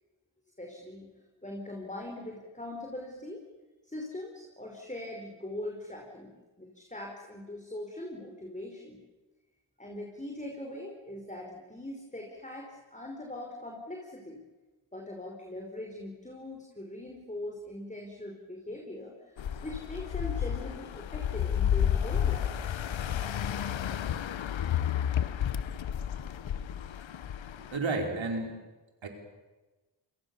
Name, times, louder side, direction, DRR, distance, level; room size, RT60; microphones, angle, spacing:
voice 1, 0.6-1.1 1.4-3.4 3.8-9.0 9.8-14.4 14.9-19.1 19.6-22.5, left 1 dB, 15° left, 0 dB, 5.3 m, -41 dB
sound 1, 19.4-27.8, left 9 dB, 80° left, 1.1 m, -31 dB
voice 2, 27.6-28.5 29.0-29.1, right 3 dB, 75° right, 3 dB, 4.9 m, -31 dB
28.0 x 22.5 x 7.2 m, 1.2 s
cardioid pair, 50°, 46 cm